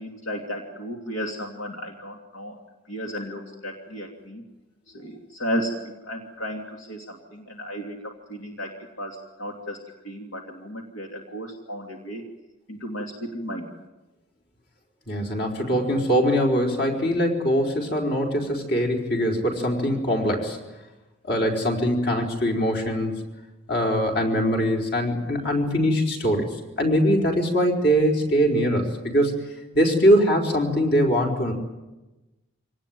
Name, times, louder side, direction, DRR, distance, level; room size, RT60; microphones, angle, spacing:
voice 1, 0.0-2.6 2.9-4.4 4.9-8.7 9.0-9.8 10.0-12.2 12.7-13.7, equal, 80° left, 1 dB, 2.8 m, -34 dB
voice 2, 15.1-20.6 21.2-23.1 23.7-26.5 26.8-29.4 29.7-31.5, equal, 55° left, 2 dB, 4.6 m, -22 dB
25.5 x 19.0 x 9.2 m, 1.1 s
head